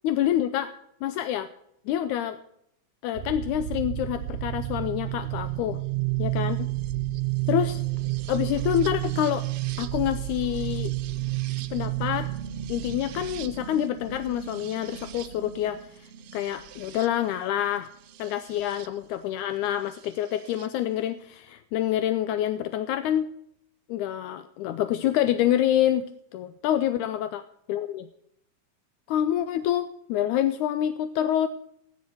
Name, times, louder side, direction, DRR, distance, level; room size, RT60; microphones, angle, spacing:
voice 1, 0.0-0.7 1.0-1.5 1.9-2.4 3.0-5.8 6.2-6.6 7.5-7.8 8.3-9.5 9.8-10.9 11.7-12.3 12.7-16.1 16.3-17.9 18.2-23.3 23.9-26.0 26.3-27.4 27.7-28.1 29.1-31.5, left 11 dB, 80° left, 11 dB, 2.0 m, -27 dB
sound 1, 3.1-18.9 20.0-20.7, right 16 dB, 75° right, 1.7 m, -32 dB
15.5 x 9.6 x 4.6 m, 0.76 s
omnidirectional pair, 3.6 m